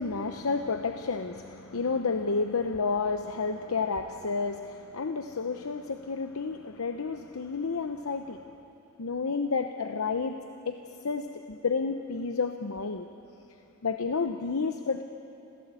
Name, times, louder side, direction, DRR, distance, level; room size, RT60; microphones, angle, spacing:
voice 1, 0.0-8.4 9.0-10.4 10.7-10.8 11.0-13.1 13.8-15.0, left 4 dB, 90° left, 7 dB, 0.8 m, -30 dB
26.5 x 16.5 x 8.3 m, 2.9 s
head